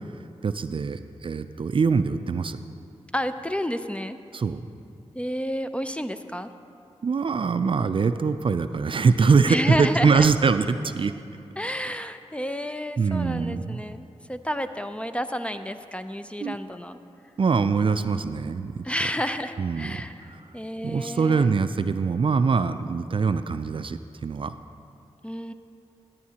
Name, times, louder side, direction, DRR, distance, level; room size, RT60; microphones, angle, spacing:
voice 1, 0.4-2.6 4.3-4.6 7.0-11.1 13.0-13.8 16.4-16.6 17.4-18.9 19.6-20.0 20.8-24.5, right 5 dB, 50° right, 11 dB, 0.4 m, -23 dB
voice 2, 3.1-4.2 5.1-6.5 9.5-10.3 11.6-17.0 18.8-21.6 25.2-25.5, equal, 10° left, 10 dB, 0.4 m, -30 dB
14.0 x 9.1 x 2.9 m, 2.6 s
cardioid pair, 45°, 12 cm